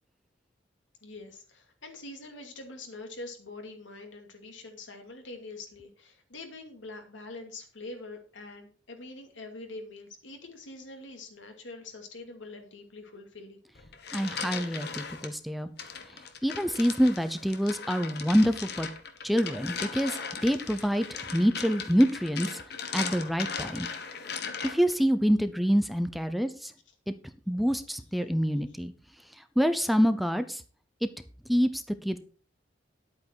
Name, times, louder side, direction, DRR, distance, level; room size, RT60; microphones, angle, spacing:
voice 1, 1.0-13.6 16.7-16.8 19.2-19.3, left 2 dB, 85° left, 4 dB, 2.5 m, -44 dB
sound 1, 13.7-15.3 15.8-25.0, left 6 dB, 60° left, 1.4 m, -38 dB
voice 2, 14.1-15.7 16.4-18.9 19.2-22.6 22.9-23.9 24.6-26.7 27.1-27.2 27.5-28.9 29.6-30.6 31.0-31.1 31.5-32.2, equal, ahead, 10 dB, 0.6 m, -26 dB
10.5 x 8.6 x 4.6 m, 0.39 s
head